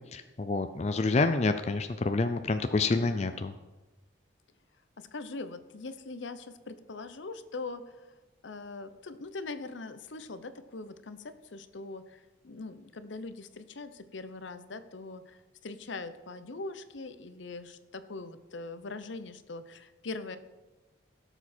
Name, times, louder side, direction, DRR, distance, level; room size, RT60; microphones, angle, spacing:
voice 1, 0.1-3.5, left 3 dB, 35° left, 8 dB, 0.4 m, -28 dB
voice 2, 5.0-8.1 8.4-20.4, left 3 dB, 75° left, 11 dB, 0.8 m, -42 dB
16.5 x 7.0 x 4.4 m, 1.1 s
head